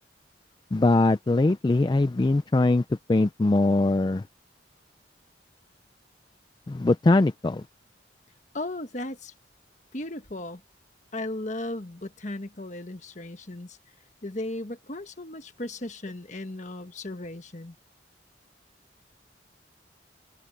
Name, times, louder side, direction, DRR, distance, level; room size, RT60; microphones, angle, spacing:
voice 1, 0.7-2.8 3.1-4.2 6.7-7.6, left 2 dB, 25° left, 0.3 m, -21 dB
voice 2, 8.5-9.3 9.9-10.6 11.1-13.8 14.2-17.8, left 1 dB, 40° left, 1.5 m, -36 dB
open air
head